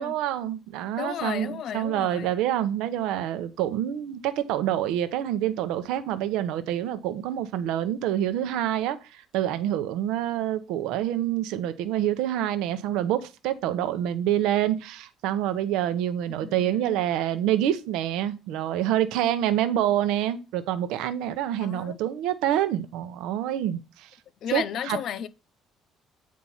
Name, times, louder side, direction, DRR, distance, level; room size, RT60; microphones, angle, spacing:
voice 1, 0.0-24.1 24.5-25.0, right 11 dB, 85° right, 0.8 m, -27 dB
voice 2, 1.0-2.3 16.4-16.9 21.6-22.0 24.4-25.3, left 9 dB, 55° left, 0.7 m, -33 dB
8.5 x 4.6 x 5.5 m
cardioid pair, 130°, 0 cm